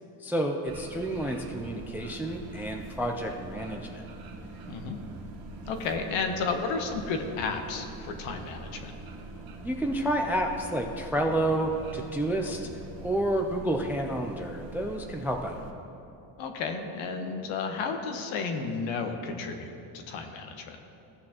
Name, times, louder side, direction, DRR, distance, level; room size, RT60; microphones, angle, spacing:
voice 1, 0.2-4.0 9.6-12.6 13.0-15.6, right 1 dB, 5° right, 3 dB, 0.3 m, -30 dB
sound 1, 0.6-15.7, right 2 dB, 45° right, 1.2 m, -43 dB
voice 2, 4.7-5.0 5.7-8.9 16.4-19.7 20.1-20.8, left 4 dB, 70° left, 5 dB, 1.2 m, -32 dB
16.0 x 6.2 x 2.9 m, 2.8 s
supercardioid pair, 100°, 48 cm